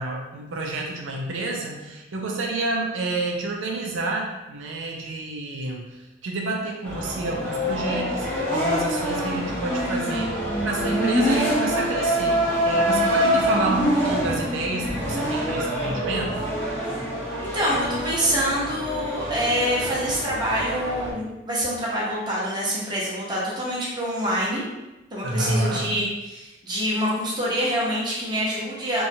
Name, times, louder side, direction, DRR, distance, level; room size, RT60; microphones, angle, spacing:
voice 1, 0.0-16.4 25.2-25.9, right 2 dB, 85° right, -1 dB, 0.4 m, -29 dB
sound 1, 6.8-21.1, equal, 10° left, 0.7 m, -25 dB
voice 2, 17.4-24.6 25.1-29.0, equal, 25° right, -7 dB, 0.8 m, -26 dB
2.7 x 2.3 x 2.7 m, 1.0 s
head